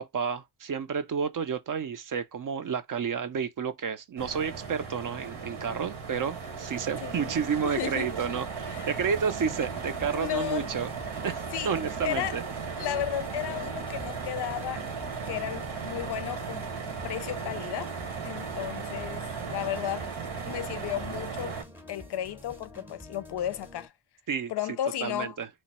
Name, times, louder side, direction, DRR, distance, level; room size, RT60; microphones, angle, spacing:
voice 1, 0.0-12.4 24.3-24.5 25.0-25.5, right 6 dB, 45° right, 0.5 m, -31 dB
sound 1, 4.2-21.6, right 5 dB, 85° right, 1.4 m, -36 dB
voice 2, 7.0-7.3 7.6-8.1 8.7-8.9 10.1-10.7 11.5-11.7 12.0-12.4 12.8-14.9 15.3-16.6 17.0-17.9 18.2-20.1 20.5-21.6 21.9-23.9 24.5-25.4, left 12 dB, 60° left, 0.5 m, -34 dB
sound 2, 8.7-23.9, left 1 dB, 5° right, 0.7 m, -48 dB
3.1 x 2.2 x 4.1 m
cardioid pair, 80°, 46 cm